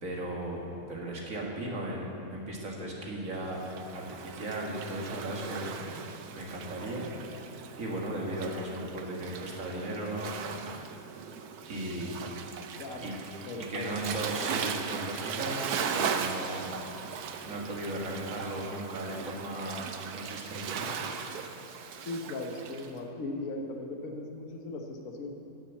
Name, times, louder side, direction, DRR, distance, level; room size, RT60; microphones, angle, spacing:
voice 1, 0.0-6.0 6.3-7.1 7.8-10.6 11.7-12.3 13.0-13.1 13.7-15.6 15.9-16.8 17.4-19.9 20.1-20.9, right 1 dB, 60° right, -2 dB, 2.3 m, -36 dB
Waves surf, 3.5-22.9, right 6 dB, 85° right, 1.3 m, -38 dB
voice 2, 12.8-13.1 13.4-14.0 22.1-25.3, left 2 dB, 65° left, 2 dB, 1.4 m, -38 dB
14.0 x 7.2 x 8.2 m, 2.7 s
omnidirectional pair, 1.6 m